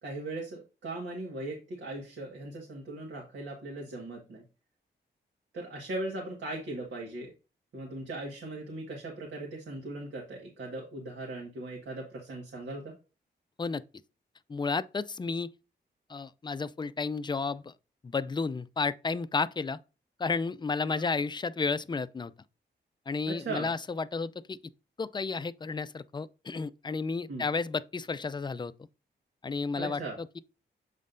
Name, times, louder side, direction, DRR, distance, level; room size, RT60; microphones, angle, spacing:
voice 1, 0.0-4.4 5.5-7.3 7.7-12.9 20.9-21.0 23.3-23.7 27.3-27.4 29.7-30.2, right 2 dB, 80° right, 1.7 m, -39 dB
voice 2, 14.5-15.5 16.1-17.7 18.0-19.8 20.2-22.3 23.1-24.6 25.0-28.7 29.4-30.4, left 4 dB, 25° left, 0.4 m, -32 dB
7.5 x 5.4 x 2.6 m
cardioid pair, 75°, 19 cm